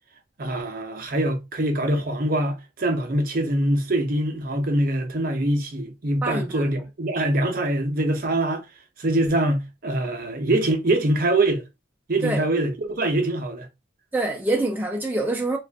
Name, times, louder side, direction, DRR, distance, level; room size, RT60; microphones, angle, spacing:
voice 1, 0.4-8.6 9.0-11.6 12.1-13.7, right 1 dB, 45° right, 0.6 m, -24 dB
voice 2, 6.2-6.7 12.2-12.5 14.1-15.6, right 2 dB, 10° right, 0.4 m, -25 dB
2.4 x 2.4 x 3.3 m
head